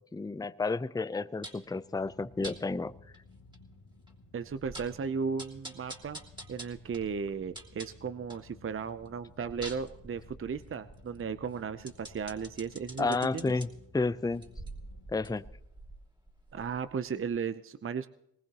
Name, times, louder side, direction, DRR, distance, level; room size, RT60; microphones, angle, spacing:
voice 1, 0.1-3.0 13.0-13.7 13.9-14.5 15.1-15.4, left 3 dB, 10° left, 14 dB, 0.6 m, -31 dB
sound 1, 1.4-1.7 2.4-2.6 3.1-3.2 3.5-3.6 4.1-4.2 4.5-5.0 5.4-8.5 8.9-13.7 14.3-17.0 17.3-17.4, right 1 dB, 10° right, 2.9 m, -47 dB
sound 2, 1.9-15.4, left 3 dB, 75° left, 2.4 m, -56 dB
voice 2, 4.3-6.2 6.5-13.5 16.5-18.1, right 6 dB, 35° right, 12 dB, 0.7 m, -35 dB
21.0 x 19.5 x 3.0 m, 0.79 s
supercardioid pair, 55°, 36 cm